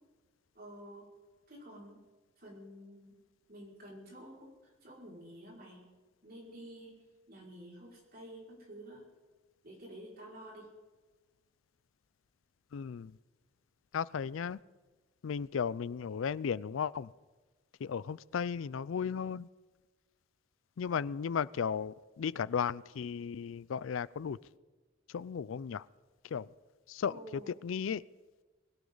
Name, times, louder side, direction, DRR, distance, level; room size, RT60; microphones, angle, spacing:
voice 1, 0.5-1.1 1.5-2.0 2.4-3.2 3.5-5.8 6.2-7.0 7.3-9.1 9.6-10.7 27.1-27.6, right 1 dB, 50° right, -3 dB, 5.3 m, -50 dB
voice 2, 12.7-13.2 13.9-14.6 15.2-17.1 17.8-19.5 20.8-24.4 25.1-25.9 26.2-26.5 26.9-27.2 27.5-28.0, left 7 dB, 80° left, 21 dB, 0.4 m, -35 dB
21.0 x 17.0 x 3.9 m, 1.3 s
head